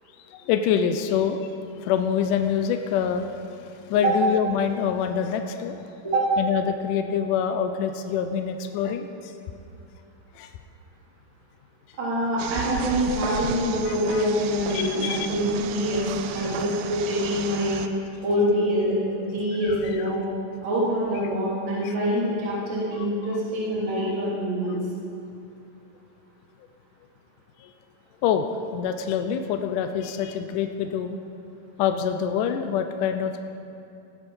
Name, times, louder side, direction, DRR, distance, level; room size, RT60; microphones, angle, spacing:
voice 1, 0.3-1.4 1.8-3.4 3.7-5.8 6.4-9.3 10.4-10.5 13.9-14.3 14.7-15.3 21.8-21.9 27.6-27.7 28.2-28.5 28.7-31.2 31.8-33.4, left 8 dB, 80° left, 7 dB, 1.9 m, -26 dB
voice 2, 12.0-17.8 18.2-20.2 20.6-24.8, equal, 30° right, -9 dB, 3.6 m, -25 dB
sound 1, 12.4-17.9, right 8 dB, 85° right, 2.4 m, -34 dB
18.0 x 8.3 x 5.4 m, 2.7 s
omnidirectional pair, 4.3 m